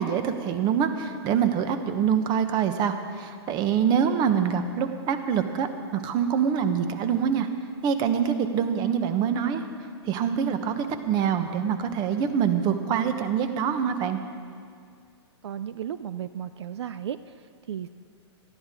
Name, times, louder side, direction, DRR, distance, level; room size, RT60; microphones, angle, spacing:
voice 1, 0.0-7.5 7.8-9.6 10.1-14.2, right 7 dB, 30° right, 9 dB, 1.1 m, -25 dB
voice 2, 15.4-17.2 17.7-17.9, right 9 dB, 70° right, 13 dB, 0.5 m, -34 dB
19.5 x 14.0 x 3.8 m, 2.2 s
hypercardioid pair, 125°, 15 cm